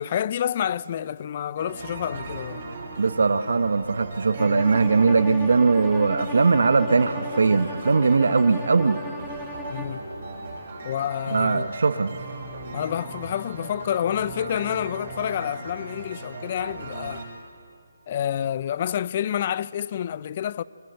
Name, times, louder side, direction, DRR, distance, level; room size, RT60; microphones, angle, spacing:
voice 1, 0.0-2.6 9.7-10.1 10.8-11.7 12.7-17.3 18.1-20.6, left 10 dB, 35° left, 0.4 m, -28 dB
sound 1, 1.6-17.3, right 2 dB, 40° right, 6.7 m, -38 dB
voice 2, 3.0-9.0 11.3-12.2, right 4 dB, 70° right, 0.9 m, -20 dB
Bowed string instrument, 4.4-10.0, left 2 dB, 5° left, 0.8 m, -37 dB
23.5 x 20.5 x 7.7 m
hypercardioid pair, 165°, 0 cm